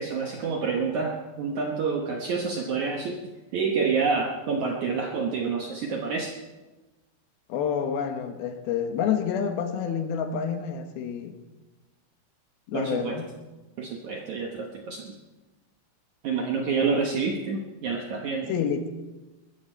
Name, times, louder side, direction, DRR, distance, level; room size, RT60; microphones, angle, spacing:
voice 1, 0.0-3.2 3.5-6.3 12.7-13.2 13.8-15.2 16.2-18.5, right 5 dB, 70° right, 2 dB, 1.8 m, -28 dB
voice 2, 7.5-11.3 12.7-13.3 18.5-18.9, left 7 dB, 70° left, 7 dB, 2.8 m, -28 dB
21.0 x 14.0 x 4.5 m, 1.2 s
omnidirectional pair, 4.9 m